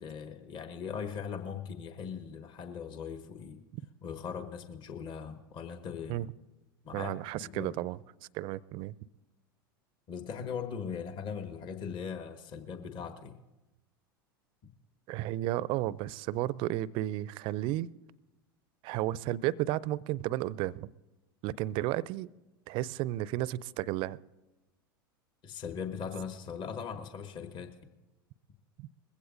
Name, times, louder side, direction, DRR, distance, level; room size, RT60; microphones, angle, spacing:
voice 1, 0.0-3.6 4.0-6.3 6.8-7.1 7.4-7.7 10.1-13.4 14.6-14.7 25.4-27.8, left 6 dB, 40° left, 8 dB, 1.3 m, -40 dB
voice 2, 6.9-8.0 8.3-8.9 15.1-17.9 18.8-20.9 21.4-22.3 22.7-24.2 28.8-28.9, right 15 dB, 45° right, 22 dB, 0.4 m, -33 dB
21.0 x 15.5 x 2.6 m, 1.1 s
figure-of-eight pair, 85°, 12 cm